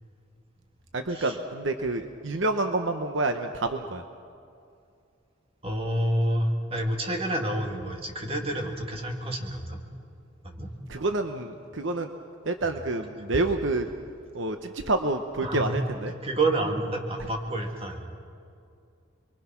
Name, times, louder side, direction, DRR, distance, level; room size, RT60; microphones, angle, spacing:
voice 1, 0.9-4.0 10.9-12.1 12.4-13.9 14.3-16.1, right 2 dB, 65° right, 6 dB, 1.0 m, -28 dB
voice 2, 5.6-9.8 10.4-10.7 15.4-15.7 16.2-18.0, right 1 dB, 30° right, 2 dB, 2.5 m, -28 dB
28.0 x 23.0 x 6.0 m, 2.4 s
head